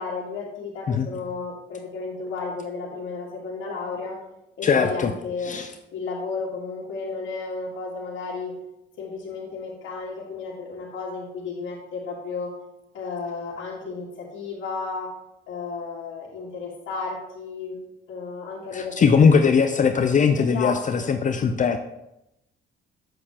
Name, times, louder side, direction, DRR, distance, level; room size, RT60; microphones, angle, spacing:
voice 1, 0.0-4.2 4.6-5.6 5.9-8.5 9.0-12.5 12.9-15.1 15.5-17.8 18.1-19.1 20.4-21.1, left 4 dB, 75° left, -4 dB, 1.7 m, -33 dB
voice 2, 4.6-5.1 5.4-5.7 18.7-21.8, left 6 dB, 40° left, 7 dB, 0.5 m, -20 dB
7.7 x 6.4 x 2.9 m, 0.87 s
cardioid pair, 90°, 20 cm